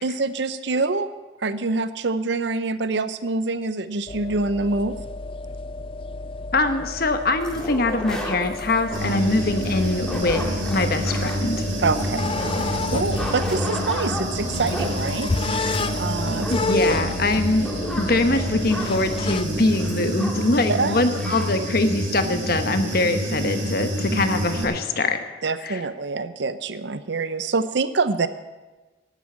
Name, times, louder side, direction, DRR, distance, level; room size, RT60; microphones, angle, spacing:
voice 1, 0.0-1.1 1.4-5.0 11.8-16.5 20.7-21.0 25.4-28.3, right 3 dB, 65° right, 12 dB, 0.6 m, -26 dB
sound 1, 4.1-19.9, left 3 dB, 25° left, 0.4 m, -31 dB
voice 2, 6.5-11.6 16.5-17.7 18.0-25.2 25.6-25.8, left 2 dB, 50° left, 8 dB, 1.0 m, -23 dB
sound 2, 7.4-20.6 20.8-20.9 21.2-21.5, left 1 dB, 5° left, 2.0 m, -35 dB
Human voice / Buzz, 8.9-24.6, equal, 90° right, 4.3 m, -28 dB
11.5 x 10.0 x 8.6 m, 1.2 s
head